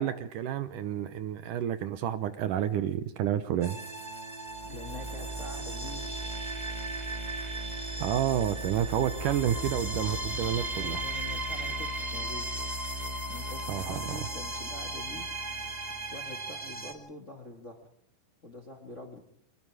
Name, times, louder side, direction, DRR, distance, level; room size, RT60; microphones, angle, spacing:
voice 1, 0.0-3.8 8.0-11.0 13.7-14.2, right 10 dB, 70° right, 12 dB, 2.3 m, -30 dB
sound 1, 3.6-16.9, right 1 dB, 20° right, 1.1 m, -36 dB
voice 2, 4.6-6.1 10.8-12.5 13.3-15.2 16.1-17.8 18.4-19.2, left 2 dB, 25° left, 4 dB, 1.7 m, -45 dB
25.0 x 21.5 x 4.9 m, 0.68 s
omnidirectional pair, 4.1 m